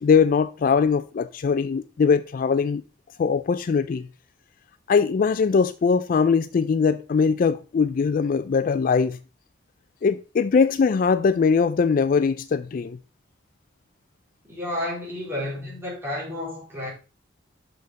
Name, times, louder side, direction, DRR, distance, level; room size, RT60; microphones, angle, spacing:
voice 1, 0.0-2.8 3.2-4.1 4.9-9.2 10.0-13.0, left 5 dB, 45° left, 0.3 m, -21 dB
voice 2, 14.4-16.9, left 1 dB, 10° right, 3.8 m, -31 dB
6.5 x 6.4 x 4.1 m
head